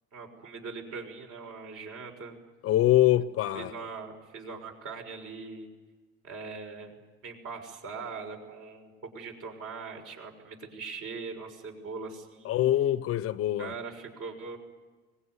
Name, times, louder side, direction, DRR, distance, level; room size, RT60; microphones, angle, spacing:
voice 1, 0.1-2.4 3.5-5.7 6.2-6.9 7.2-12.6 13.6-14.6, right 4 dB, 50° right, 6.1 m, -41 dB
voice 2, 2.6-3.7 12.4-13.7, left 13 dB, 50° left, 0.8 m, -24 dB
24.5 x 21.0 x 9.7 m
cardioid pair, 150°, 30 cm